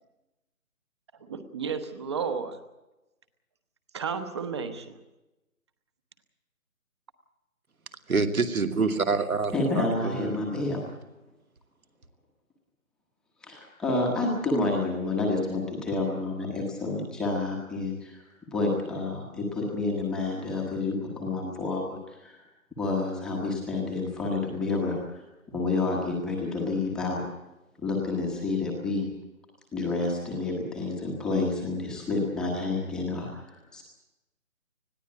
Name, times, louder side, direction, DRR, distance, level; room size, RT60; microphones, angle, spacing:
voice 1, 1.2-2.6 3.9-5.0, right 6 dB, 20° right, 10 dB, 1.1 m, -32 dB
voice 2, 8.1-10.4, right 4 dB, 80° right, 7 dB, 2.7 m, -27 dB
voice 3, 9.5-10.8 13.4-22.4 22.7-27.2 27.8-29.1 29.7-33.8, left 3 dB, ahead, -2 dB, 1.1 m, -29 dB
20.5 x 15.0 x 9.1 m, 1.0 s
figure-of-eight pair, 160°, 42 cm